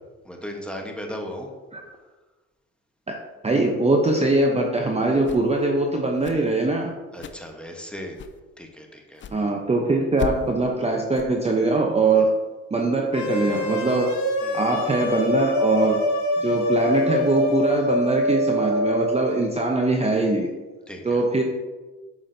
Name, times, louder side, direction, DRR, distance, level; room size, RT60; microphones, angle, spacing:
voice 1, 0.2-1.5 7.1-8.2 8.6-9.2 12.1-12.3 14.4-14.6 20.9-21.2, equal, 5° left, 1 dB, 1.1 m, -36 dB
voice 2, 3.4-6.9 9.3-12.3 12.7-14.1 14.5-16.0 16.4-20.5 21.0-21.4, right 2 dB, 20° right, 1 dB, 0.7 m, -22 dB
sound 1, 5.1-5.6 6.1-6.5 7.1-7.5 8.1-8.4 9.1-9.4 10.1-10.5 11.1-11.3, left 5 dB, 40° left, 0.5 m, -36 dB
sound 2, 13.1-19.3, left 1 dB, 70° left, 1.1 m, -25 dB
7.4 x 6.2 x 2.7 m, 1.3 s
cardioid pair, 90°, 30 cm